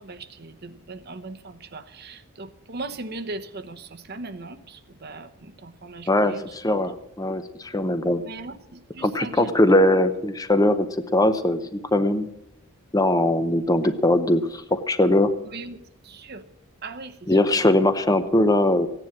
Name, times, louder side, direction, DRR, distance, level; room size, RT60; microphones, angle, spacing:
voice 1, 0.0-6.4 6.9-7.0 8.3-8.6 8.9-9.5 15.5-15.8 16.0-16.4 16.8-17.1, right 3 dB, 45° right, 9 dB, 0.9 m, -38 dB
voice 2, 6.1-8.2 9.0-12.3 12.9-15.3 17.3-18.9, left 1 dB, 15° left, 10 dB, 0.7 m, -21 dB
16.0 x 10.0 x 7.3 m, 0.83 s
head